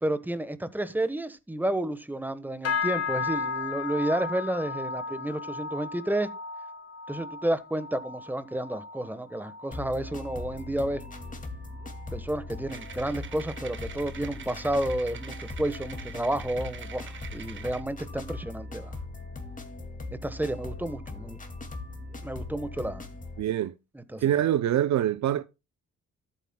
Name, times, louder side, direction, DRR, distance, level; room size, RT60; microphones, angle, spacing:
voice 1, 0.0-6.3 7.1-11.0 12.1-18.9 20.2-21.4 22.2-23.0 23.9-24.3, right 1 dB, 5° right, 1.2 m, -31 dB
sound 1, 2.6-12.2 12.5-12.9 13.3-13.7 14.2-14.3, left 5 dB, 55° left, 2.1 m, -36 dB
sound 2, 9.7-23.4, left 2 dB, 25° left, 2.3 m, -40 dB
sound 3, 12.7-17.8, right 7 dB, 40° right, 1.3 m, -45 dB
voice 2, 23.4-23.7 24.2-25.4, right 11 dB, 65° right, 0.6 m, -24 dB
14.0 x 8.8 x 2.2 m
cardioid pair, 90°, 30 cm